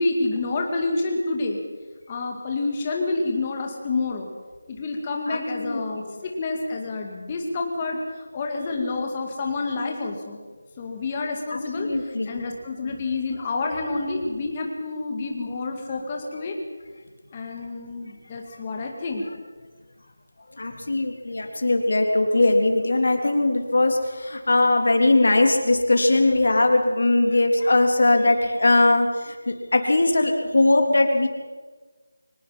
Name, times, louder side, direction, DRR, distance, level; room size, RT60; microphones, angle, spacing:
voice 1, 0.0-1.6 2.1-4.3 4.7-8.0 8.3-10.4 10.8-11.9 12.3-16.6 17.3-19.2, left 3 dB, 15° left, 2 dB, 2.1 m, -28 dB
voice 2, 5.3-6.2 11.5-12.3 18.5-18.6 20.6-31.3, left 2 dB, 60° left, 4 dB, 3.4 m, -20 dB
24.5 x 18.5 x 5.8 m, 1.4 s
figure-of-eight pair, 175°, 0 cm